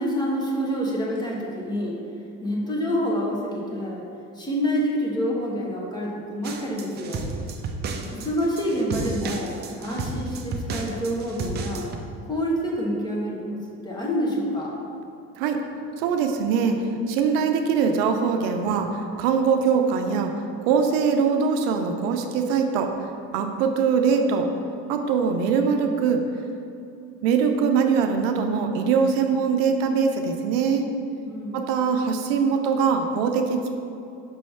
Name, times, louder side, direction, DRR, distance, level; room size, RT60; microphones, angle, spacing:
voice 1, 0.0-2.0 2.4-4.0 4.4-7.3 8.1-9.5 9.8-11.9 12.3-13.6 13.8-14.7 31.3-31.6, equal, 15° left, -3 dB, 1.0 m, -27 dB
sound 1, 6.4-12.0, right 3 dB, 35° right, 0.5 m, -32 dB
voice 2, 16.0-20.3 20.7-22.9 23.3-24.5 24.9-26.2 27.2-30.8 31.5-33.7, right 6 dB, 90° right, 5 dB, 0.6 m, -22 dB
5.5 x 3.2 x 5.6 m, 2.6 s
cardioid pair, 135°, 30 cm